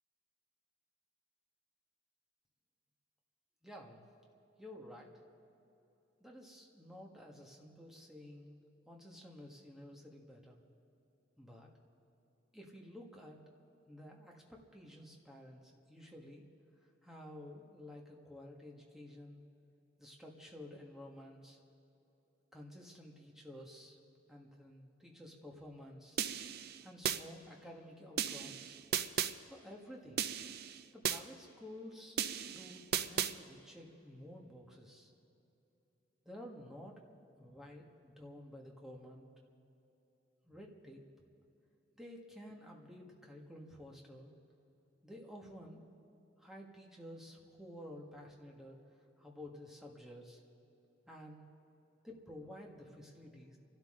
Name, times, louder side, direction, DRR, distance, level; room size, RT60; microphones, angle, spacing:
voice 1, 3.6-4.0 4.6-5.1 6.2-10.6 11.4-11.7 12.5-13.4 13.9-15.6 15.9-16.4 17.0-19.4 20.0-21.6 22.5-24.0 24.3-26.2 26.8-28.8 29.4-30.3 30.9-32.2 32.4-35.1 36.2-37.0 37.4-39.3 40.4-41.0 42.0-44.3 45.0-45.8 46.4-48.8 49.2-50.4 51.1-51.5 52.0-53.6, left 1 dB, ahead, -1 dB, 1.7 m, -52 dB
sound 1, 26.2-27.2 28.2-29.3 30.2-31.2 32.2-33.3, right 8 dB, 55° right, 0.5 m, -36 dB
29.5 x 12.5 x 3.8 m, 2.9 s
head